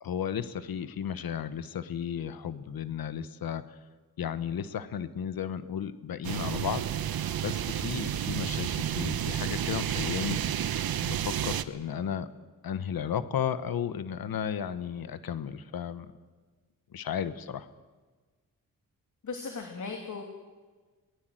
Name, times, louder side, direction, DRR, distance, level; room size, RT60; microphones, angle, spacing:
voice 1, 0.0-3.6 4.2-6.8 7.4-10.4 11.0-12.3 12.6-16.1 16.9-17.7, left 8 dB, 85° left, 13 dB, 1.3 m, -34 dB
sound 1, 6.2-11.6, right 10 dB, 85° right, 1.0 m, -31 dB
voice 2, 19.2-20.2, left 4 dB, 55° left, 3 dB, 2.8 m, -37 dB
22.0 x 19.5 x 7.8 m, 1.4 s
wide cardioid pair, 100°, 35 cm